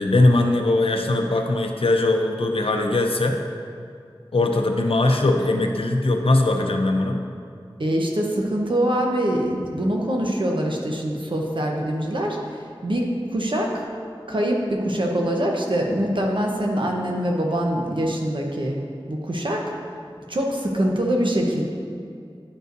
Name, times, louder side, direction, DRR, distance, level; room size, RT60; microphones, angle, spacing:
voice 1, 0.0-3.4 4.3-7.2, left 2 dB, 85° left, 4 dB, 0.6 m, -20 dB
voice 2, 7.8-12.4 12.8-13.8 14.3-18.8 19.1-19.7 20.3-21.6, right 1 dB, 65° right, 0 dB, 0.9 m, -24 dB
10.5 x 5.2 x 2.6 m, 2.3 s
wide cardioid pair, 45°, 9 cm